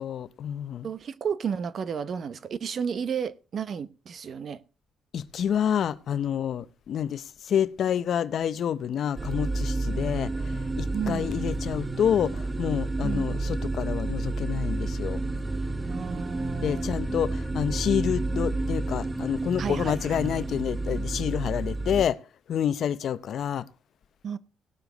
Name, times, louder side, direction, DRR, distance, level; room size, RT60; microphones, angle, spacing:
voice 1, 0.0-0.9 5.1-15.2 16.6-22.2 22.5-23.6, left 9 dB, 65° left, 0.6 m, -28 dB
voice 2, 0.8-4.6 9.9-10.0 10.9-11.3 13.0-13.3 15.9-16.9 19.6-20.2 24.2-24.4, right 7 dB, 55° right, 0.8 m, -32 dB
sound 1, 9.2-22.0, right 2 dB, 15° right, 1.0 m, -30 dB
18.0 x 7.1 x 3.9 m
cardioid pair, 90°, 0 cm